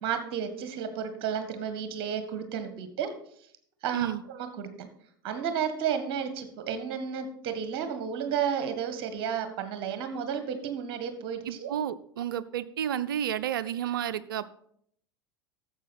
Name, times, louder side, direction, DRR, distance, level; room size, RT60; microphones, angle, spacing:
voice 1, 0.0-3.1 3.8-4.9 5.2-11.7, right 7 dB, 45° right, 8 dB, 1.5 m, -32 dB
voice 2, 11.5-14.5, right 10 dB, 65° right, 15 dB, 0.5 m, -31 dB
12.0 x 7.5 x 4.2 m, 0.67 s
figure-of-eight pair, 80°, 12 cm